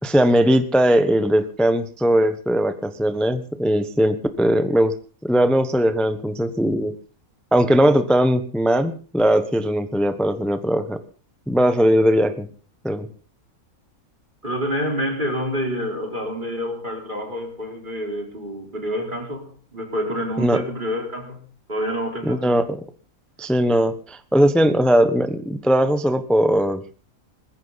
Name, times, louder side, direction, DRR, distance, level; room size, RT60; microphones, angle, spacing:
voice 1, 0.0-4.9 5.2-6.9 7.5-11.0 11.5-12.5 12.8-13.1 20.4-20.6 22.2-22.8 23.4-26.8, equal, ahead, 0.9 m, -19 dB
voice 2, 14.4-21.4 21.7-22.6, equal, 30° right, 4.4 m, -28 dB
20.5 x 15.5 x 4.1 m
omnidirectional pair, 1.5 m